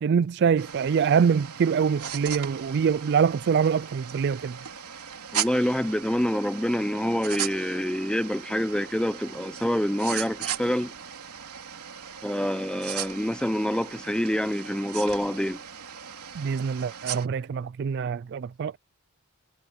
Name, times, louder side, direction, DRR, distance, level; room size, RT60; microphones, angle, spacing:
voice 1, 0.0-4.6 16.4-18.8, right 6 dB, 50° right, 0.3 m, -24 dB
sound 1, 0.6-17.3, right 9 dB, 90° right, 3.2 m, -37 dB
voice 2, 5.3-10.9 12.2-15.6, equal, 5° left, 0.6 m, -26 dB
head